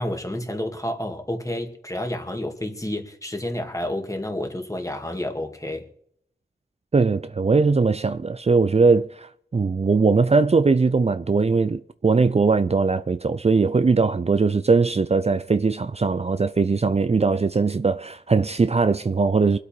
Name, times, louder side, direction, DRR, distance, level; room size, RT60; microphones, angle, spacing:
voice 1, 0.0-5.9 14.0-14.1, left 1 dB, 20° left, 2.3 m, -30 dB
voice 2, 6.9-19.6, right 4 dB, 40° right, 0.5 m, -20 dB
23.5 x 8.3 x 4.5 m
wide cardioid pair, 55°, 17 cm